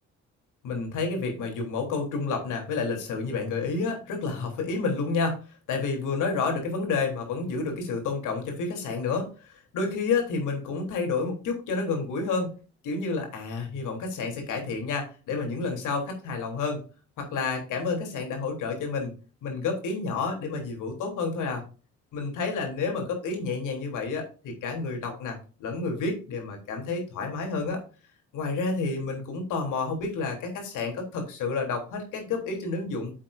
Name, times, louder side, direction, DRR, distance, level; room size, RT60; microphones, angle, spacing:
voice 1, 0.6-5.4 5.7-12.5 12.8-16.8 17.2-19.1 19.4-21.6 22.1-27.8 28.3-33.1, left 4 dB, 85° left, 3 dB, 3.4 m, -30 dB
9.7 x 7.4 x 2.6 m, 0.35 s
cardioid pair, 90°, 30 cm